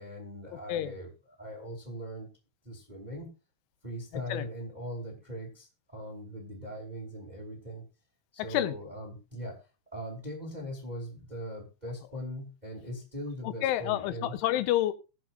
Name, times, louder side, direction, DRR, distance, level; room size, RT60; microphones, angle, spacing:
voice 1, 0.0-2.3 2.6-3.3 3.8-7.8 8.3-9.6 9.9-14.4, equal, 15° right, 1.8 m, -40 dB
voice 2, 13.4-14.9, left 13 dB, 85° left, 3.3 m, -29 dB
22.0 x 7.6 x 2.5 m
omnidirectional pair, 5.5 m